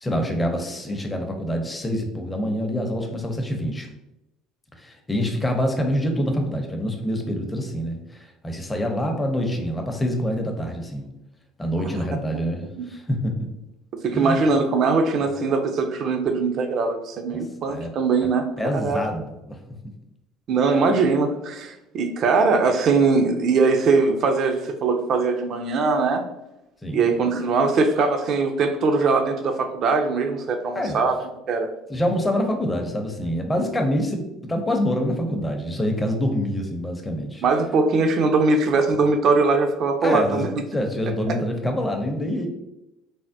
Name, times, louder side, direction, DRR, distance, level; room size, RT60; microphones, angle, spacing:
voice 1, 0.0-3.9 4.8-11.0 11.6-13.3 14.1-14.4 17.3-17.4 17.7-17.9 18.2-18.3 18.6-19.6 26.8-27.1 30.7-31.0 31.9-37.4 40.0-40.4 40.7-42.5, equal, 15° left, 3 dB, 0.6 m, -26 dB
voice 2, 13.9-18.5 18.8-19.0 20.5-26.2 26.9-31.2 31.5-31.7 37.4-40.5 41.3-41.4, right 4 dB, 55° right, 5 dB, 0.4 m, -21 dB
3.3 x 2.1 x 2.6 m, 0.92 s
hypercardioid pair, 65°, 0 cm